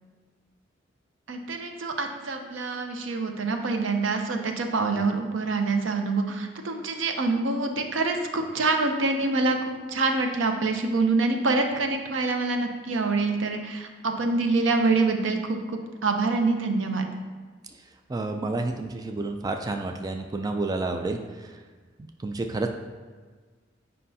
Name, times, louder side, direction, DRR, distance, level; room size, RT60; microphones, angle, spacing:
voice 1, 1.3-9.6 9.9-17.1, right 3 dB, 85° right, 4 dB, 0.7 m, -26 dB
voice 2, 18.1-21.2 22.2-22.7, right 2 dB, 20° right, 4 dB, 0.3 m, -29 dB
7.5 x 5.4 x 2.8 m, 1.4 s
head